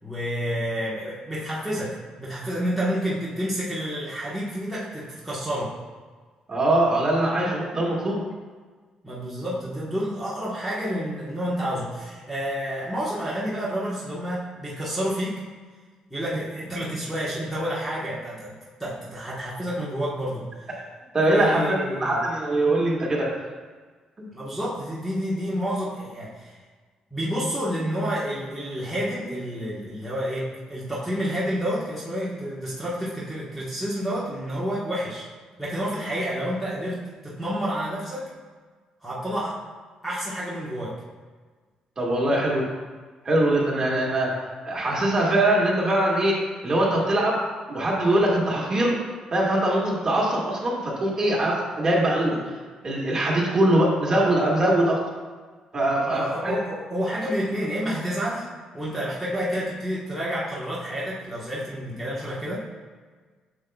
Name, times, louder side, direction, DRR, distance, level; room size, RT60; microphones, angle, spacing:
voice 1, 0.0-5.7 9.0-15.4 16.1-18.5 18.8-20.5 21.3-22.2 24.3-26.5 27.1-35.2 35.6-38.2 39.0-39.6 40.0-41.0 56.1-58.5 58.7-62.7, equal, ahead, -7 dB, 1.3 m, -29 dB
voice 2, 6.5-8.2 21.1-23.3 24.2-24.3 42.0-42.7 43.2-44.3 44.6-46.4 46.6-47.4 47.7-49.0 49.3-52.4 52.8-55.0 55.7-56.5, right 1 dB, 30° right, -4 dB, 1.8 m, -22 dB
7.8 x 6.6 x 2.3 m, 1.4 s
cardioid pair, 125°, 2 cm